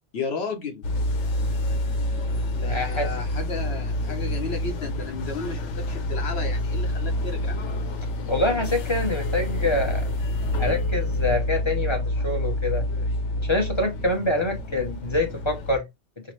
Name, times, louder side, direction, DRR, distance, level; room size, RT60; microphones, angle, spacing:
voice 1, 0.1-0.9 2.5-7.6, left 4 dB, 70° left, 1.1 m, -33 dB
sound 1, 0.8-15.8, left 1 dB, 90° left, 1.0 m, -27 dB
voice 2, 2.7-3.1 8.3-10.1 10.6-12.9 13.4-15.9, left 2 dB, 30° left, 0.8 m, -25 dB
4.7 x 2.0 x 3.0 m
omnidirectional pair, 1.2 m